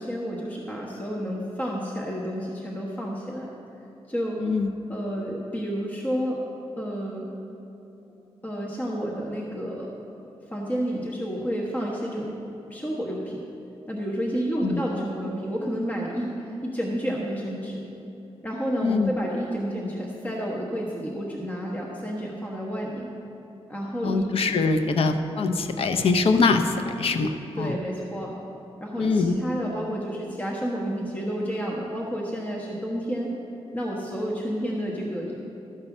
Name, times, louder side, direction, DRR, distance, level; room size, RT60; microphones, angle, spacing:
voice 1, 0.0-3.5 4.1-4.4 4.9-6.4 6.8-7.3 8.4-10.0 10.5-12.3 12.7-13.4 13.9-17.8 18.4-23.1 23.7-24.6 27.6-28.3 28.8-33.3 33.7-35.3, equal, 15° left, -3 dB, 1.2 m, -30 dB
voice 2, 4.4-4.7 14.6-14.8 18.8-19.1 24.0-27.3 27.6-27.7 29.0-29.4, left 4 dB, 65° left, 6 dB, 0.7 m, -23 dB
13.0 x 5.5 x 7.2 m, 2.9 s
cardioid pair, 100°, 11 cm